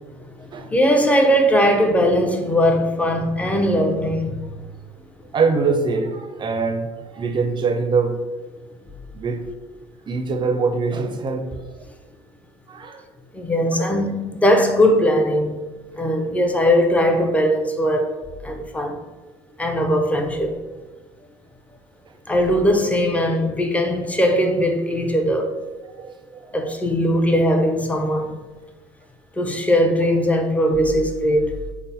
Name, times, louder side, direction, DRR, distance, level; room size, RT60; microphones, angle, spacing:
voice 1, 0.4-4.5 13.3-15.6 15.9-19.0 19.6-20.6 22.3-25.5 26.5-28.4 29.4-31.5, equal, 10° left, 0.6 m, -19 dB
voice 2, 5.3-8.2 9.1-9.5 10.1-11.5 12.7-13.0 13.7-13.9 25.9-26.5, right 4 dB, 35° right, 0.5 m, -23 dB
3.8 x 2.0 x 4.1 m
supercardioid pair, 80°, 14 cm